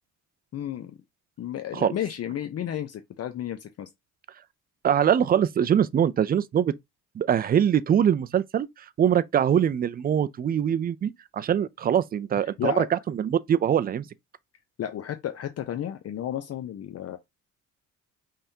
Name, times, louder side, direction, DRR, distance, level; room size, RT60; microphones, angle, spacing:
voice 1, 0.5-0.9 1.4-3.9 12.6-12.9 14.8-17.2, left 10 dB, 45° left, 0.7 m, -32 dB
voice 2, 4.8-6.7 7.2-8.7 9.0-14.1, right 9 dB, 30° right, 0.4 m, -23 dB
5.6 x 3.4 x 2.7 m
cardioid pair, 125°, 34 cm